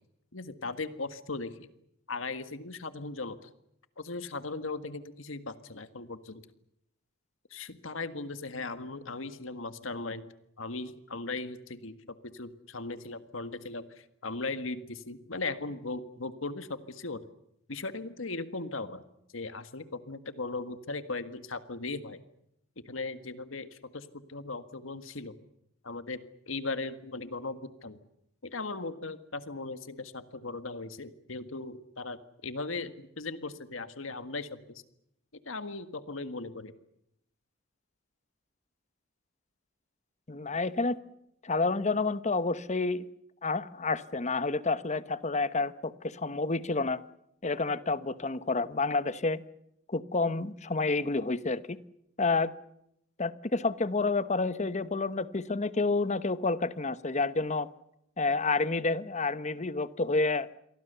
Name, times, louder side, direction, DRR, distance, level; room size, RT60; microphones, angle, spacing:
voice 1, 0.3-1.7 2.1-3.5 4.0-6.4 7.5-10.3 10.6-12.0 12.3-17.2 17.7-19.0 19.3-22.2 22.9-25.4 25.8-26.2 26.5-28.0 28.4-34.6 35.5-36.7, left 3 dB, 80° left, 11 dB, 1.7 m, -38 dB
voice 2, 40.3-41.0 41.4-43.0 43.4-47.0 47.4-49.4 49.9-51.8 52.2-52.5 53.2-57.7 58.2-60.5, left 3 dB, 35° left, 14 dB, 1.0 m, -29 dB
29.0 x 23.5 x 6.9 m, 0.77 s
head